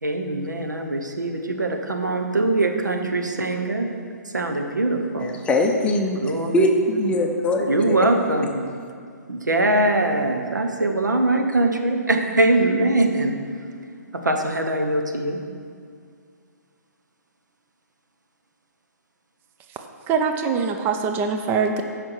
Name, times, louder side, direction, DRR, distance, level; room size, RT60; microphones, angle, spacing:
voice 1, 0.0-3.9 4.2-5.3 6.2-6.7 7.7-8.6 9.3-13.4 14.1-15.4, right 2 dB, 90° right, 4 dB, 1.3 m, -22 dB
voice 2, 5.2-6.2 6.5-8.0, left 1 dB, 10° left, 2 dB, 0.8 m, -21 dB
voice 3, 20.1-21.8, right 5 dB, 20° right, 5 dB, 0.6 m, -23 dB
14.5 x 5.8 x 4.8 m, 2.1 s
figure-of-eight pair, 135°, 10 cm